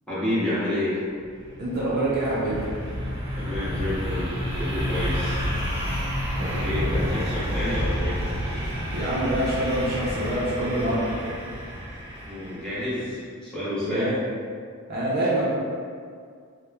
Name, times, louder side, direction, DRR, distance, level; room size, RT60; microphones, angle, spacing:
voice 1, 0.1-1.0 3.4-5.4 6.6-8.2 12.3-14.2, left 1 dB, 5° left, -12 dB, 0.8 m, -29 dB
sound 1, 1.2-12.9, equal, 30° right, 1.0 m, -29 dB
voice 2, 1.6-2.6 6.3-6.9 8.9-11.1 13.8-14.2 14.9-15.4, right 1 dB, 45° right, -7 dB, 0.4 m, -26 dB
2.9 x 2.0 x 2.3 m, 2.1 s
head